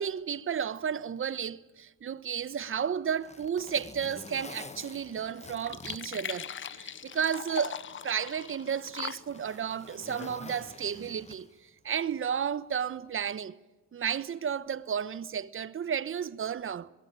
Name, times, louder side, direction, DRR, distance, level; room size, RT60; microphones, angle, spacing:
voice 1, 0.0-7.8 8.0-11.5 11.8-13.6 13.9-16.9, right 7 dB, 45° right, 1.0 m, -32 dB
Zipper (clothing), 2.5-7.0 7.4-7.5 8.3-11.7 12.9-13.1, left 4 dB, 20° left, 1.2 m, -48 dB
sound 1, 4.1-11.2, left 8 dB, 40° left, 0.9 m, -43 dB
23.0 x 21.0 x 9.0 m
cardioid pair, 90°, 30 cm